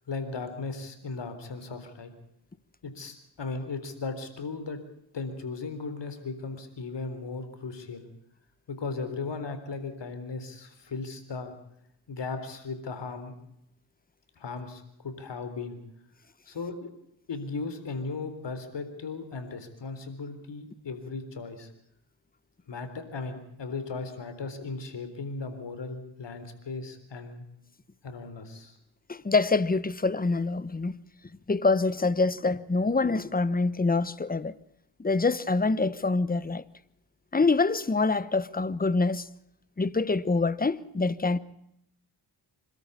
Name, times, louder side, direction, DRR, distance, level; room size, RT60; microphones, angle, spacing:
voice 1, 0.1-2.1 2.8-4.8 5.1-8.1 8.7-11.5 12.1-13.3 14.4-15.8 16.5-16.9 17.3-21.7 22.7-27.4 28.0-28.8, left 4 dB, 65° left, 3.9 m, -37 dB
voice 2, 29.1-31.0 31.5-34.5 35.0-36.6 37.3-39.3 39.8-41.4, left 3 dB, 20° left, 1.1 m, -25 dB
26.0 x 13.0 x 8.5 m
cardioid pair, 60°, 45 cm